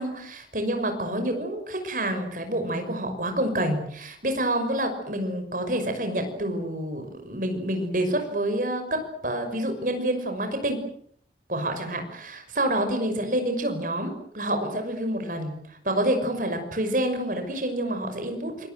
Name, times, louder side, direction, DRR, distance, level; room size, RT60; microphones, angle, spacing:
voice 1, 0.0-10.8 11.5-18.7, right 1 dB, 50° right, 6 dB, 6.0 m, -28 dB
26.0 x 23.5 x 7.9 m, 0.65 s
head